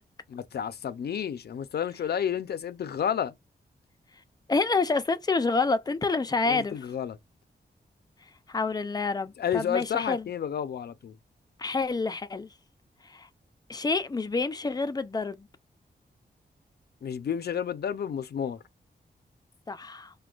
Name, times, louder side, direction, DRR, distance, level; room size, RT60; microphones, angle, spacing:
voice 1, 0.3-3.3 6.5-7.2 9.4-11.1 17.0-18.6, left 8 dB, 70° left, 0.5 m, -31 dB
voice 2, 4.5-6.8 8.5-10.3 11.6-12.5 13.0-13.3 13.7-15.5 19.7-20.1, left 3 dB, 20° left, 0.5 m, -28 dB
5.0 x 2.2 x 2.3 m
wide cardioid pair, 130°, 18 cm